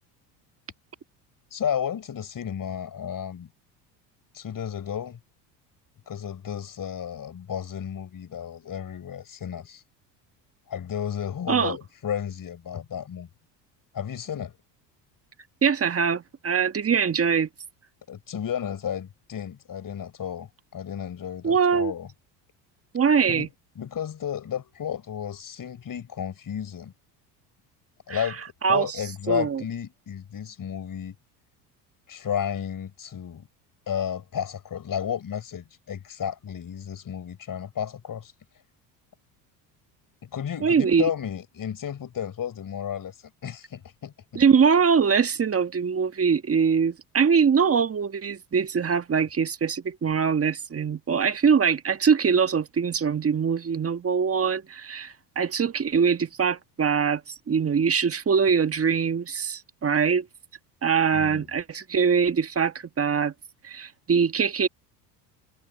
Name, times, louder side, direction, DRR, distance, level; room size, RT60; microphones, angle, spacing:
voice 1, 1.5-3.5 4.3-5.2 6.1-9.8 10.7-13.3 13.9-14.5 18.1-22.1 23.3-23.5 23.7-26.9 28.1-31.1 32.1-33.5 33.9-38.3 40.2-43.1 43.4-44.4 61.1-61.4, left 8 dB, 40° left, 6.6 m, -32 dB
voice 2, 15.6-17.5 21.4-21.9 22.9-23.5 28.1-28.3 28.6-29.0 29.3-29.6 40.6-41.1 44.3-60.3 60.8-63.3 63.6-64.7, right 6 dB, 30° right, 1.6 m, -23 dB
hypercardioid pair, 70°, 50 cm